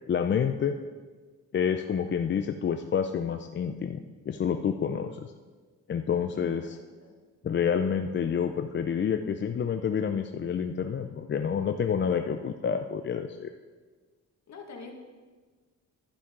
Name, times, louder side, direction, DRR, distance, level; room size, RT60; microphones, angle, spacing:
voice 1, 0.1-0.7 1.5-4.0 4.3-5.3 5.9-6.8 7.4-13.5, left 7 dB, 35° left, 7 dB, 0.5 m, -28 dB
voice 2, 6.3-7.2 14.5-14.9, left 4 dB, 60° left, 2 dB, 1.9 m, -46 dB
11.5 x 10.0 x 3.8 m, 1.4 s
cardioid pair, 95°, 32 cm